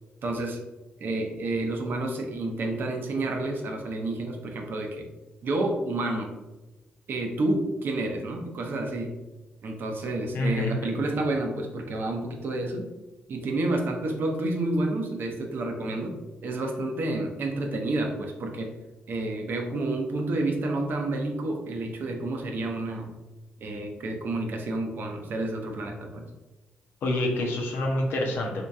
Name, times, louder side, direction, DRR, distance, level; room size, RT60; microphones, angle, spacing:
voice 1, 0.2-0.6 1.0-5.1 5.4-6.3 7.1-9.2 9.6-12.9 13.3-16.1 16.4-18.7 19.1-23.1 23.6-26.2, right 2 dB, 65° right, 3 dB, 0.7 m, -29 dB
voice 2, 10.3-10.9 27.0-28.7, left 1 dB, 75° left, 0 dB, 0.8 m, -27 dB
2.9 x 2.7 x 3.5 m, 1.1 s
supercardioid pair, 55°, 4 cm